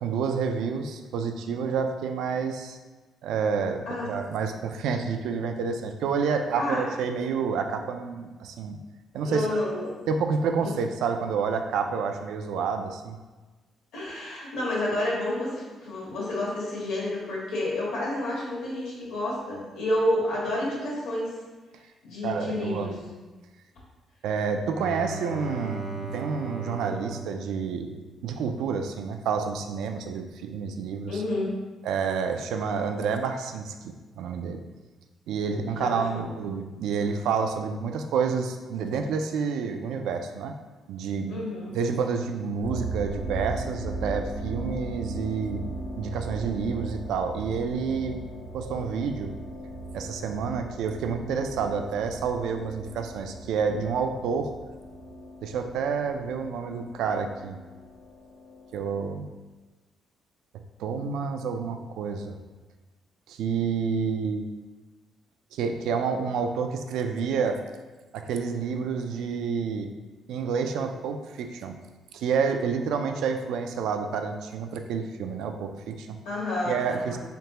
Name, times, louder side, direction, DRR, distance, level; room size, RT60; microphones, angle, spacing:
voice 1, 0.0-2.8 3.2-8.8 9.1-9.5 10.1-13.2 22.2-22.9 24.2-28.0 28.2-31.2 31.8-34.6 35.3-40.5 40.9-41.4 41.7-45.7 46.0-48.2 48.5-49.3 49.9-54.5 55.4-57.6 58.7-59.3 60.8-62.4 63.3-64.5 65.5-67.6 68.1-69.9 70.3-71.8 72.1-76.2 76.7-77.2, right 5 dB, 85° right, 6 dB, 0.3 m, -29 dB
voice 2, 9.2-10.0 10.6-10.7 13.9-21.4 22.0-23.0 31.1-31.5 35.5-36.3 41.3-41.7 76.2-77.2, left 1 dB, 85° left, -5 dB, 1.4 m, -30 dB
Bowed string instrument, 24.7-28.4, right 3 dB, 5° left, 0.4 m, -37 dB
sound 1, 42.6-59.1, right 2 dB, 70° left, 0.8 m, -38 dB
3.9 x 3.3 x 2.9 m, 1.3 s
cardioid pair, 160°, 0 cm